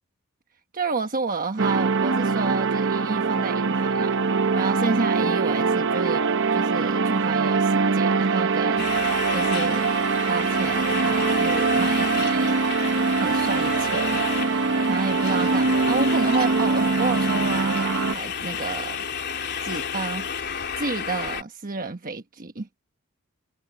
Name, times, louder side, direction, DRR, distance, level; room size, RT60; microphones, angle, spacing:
voice 1, 0.7-9.9 10.3-12.5 13.2-14.2 14.9-19.0 19.6-20.3 20.7-22.7, right 4 dB, 40° right, 1.2 m, -30 dB
sound 1, 1.6-18.1, right 4 dB, 60° right, 0.9 m, -23 dB
sound 2, 8.8-21.4, left 7 dB, 50° left, 3.3 m, -32 dB
head